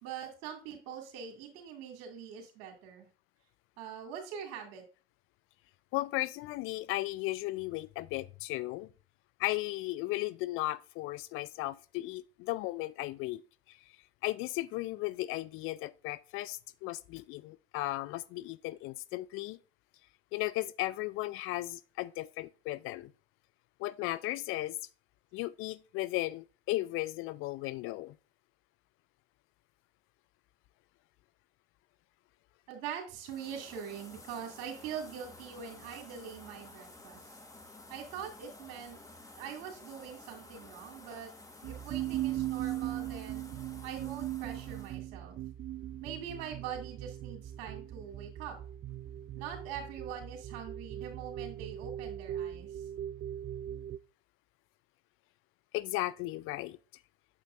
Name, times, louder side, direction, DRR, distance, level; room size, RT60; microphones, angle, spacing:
voice 1, 0.0-3.1 3.8-4.8 32.7-37.4 37.9-39.0 39.4-41.3 41.6-43.5 43.8-45.4 46.0-48.6 49.4-52.8, right 8 dB, 60° right, 2.3 m, -43 dB
voice 2, 5.9-8.9 9.4-13.4 13.7-13.8 14.2-19.6 20.3-23.1 23.8-24.8 25.3-28.1 55.7-56.8, left 18 dB, 45° left, 0.4 m, -35 dB
sound 1, 33.2-45.0, left 2 dB, 10° left, 1.5 m, -53 dB
sound 2, 41.6-54.0, right 12 dB, 35° right, 0.4 m, -39 dB
8.2 x 7.2 x 2.5 m
hypercardioid pair, 70°, 29 cm